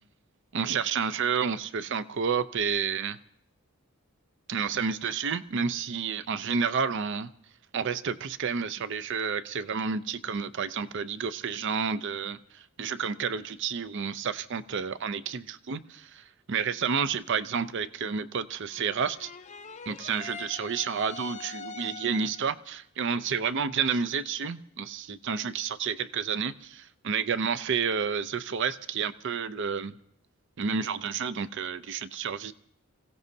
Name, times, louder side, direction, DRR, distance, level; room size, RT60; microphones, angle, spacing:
voice 1, 0.5-3.2 4.5-7.3 7.7-12.4 12.8-16.2 16.5-19.3 19.9-29.9 30.6-32.5, right 6 dB, 55° right, 14 dB, 0.5 m, -30 dB
sound 1, 18.7-22.6, left 4 dB, 35° left, 0.6 m, -43 dB
27.5 x 16.0 x 2.7 m, 0.70 s
head